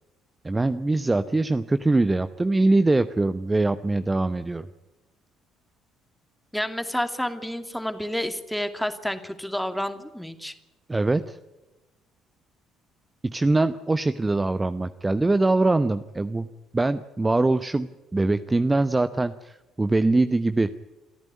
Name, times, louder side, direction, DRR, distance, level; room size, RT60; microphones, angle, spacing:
voice 1, 0.4-4.7 10.9-11.4 13.2-20.7, right 2 dB, 15° right, 12 dB, 0.9 m, -23 dB
voice 2, 6.5-10.5, equal, 5° left, 8 dB, 2.4 m, -29 dB
27.5 x 14.5 x 9.5 m, 1.0 s
figure-of-eight pair, 50°, 0 cm